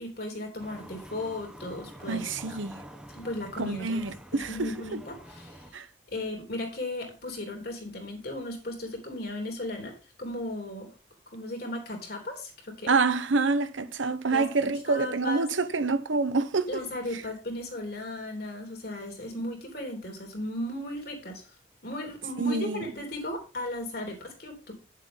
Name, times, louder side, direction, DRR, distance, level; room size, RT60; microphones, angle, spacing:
voice 1, 0.0-2.6 3.1-4.0 4.3-5.8 6.1-10.9 11.3-13.0 14.3-14.5 14.9-15.5 16.7-21.5 21.8-24.8, left 1 dB, 55° left, 3.3 m, -36 dB
sound 1, 0.6-5.7, right 1 dB, 5° right, 1.2 m, -47 dB
voice 2, 2.1-2.8 3.6-5.0 5.7-5.9 12.9-16.8 17.1-17.2 22.4-22.9, right 4 dB, 85° right, 0.9 m, -27 dB
9.6 x 7.6 x 3.7 m
head